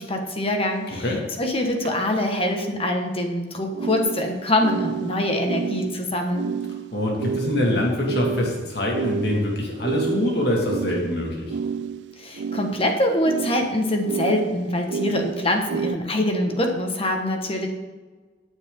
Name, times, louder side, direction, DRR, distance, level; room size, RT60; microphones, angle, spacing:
voice 1, 0.0-1.1 1.4-6.5 12.2-17.7, left 1 dB, 35° left, 3 dB, 1.7 m, -24 dB
sound 1, 0.9-1.0 1.8-1.9 3.7-16.0, right 6 dB, 80° right, 0.3 m, -30 dB
voice 2, 6.9-11.5, left 1 dB, 65° left, -1 dB, 2.3 m, -24 dB
16.5 x 9.0 x 3.9 m, 1.3 s
head